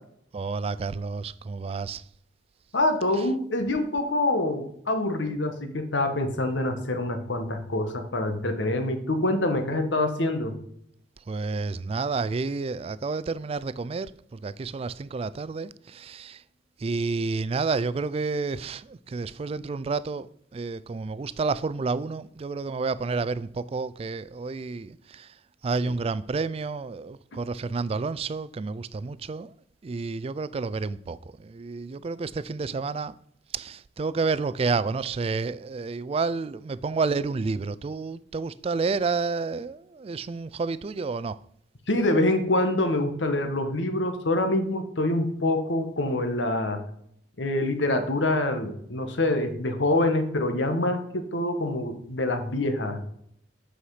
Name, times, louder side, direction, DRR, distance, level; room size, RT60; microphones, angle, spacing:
voice 1, 0.3-2.0 11.3-16.4 16.8-25.3 25.6-29.5 29.8-33.1 33.5-41.4, right 4 dB, 35° right, 0.3 m, -30 dB
voice 2, 2.7-10.6 41.9-46.8 47.4-53.0, left 1 dB, 85° left, 1.4 m, -25 dB
8.4 x 5.7 x 4.9 m
head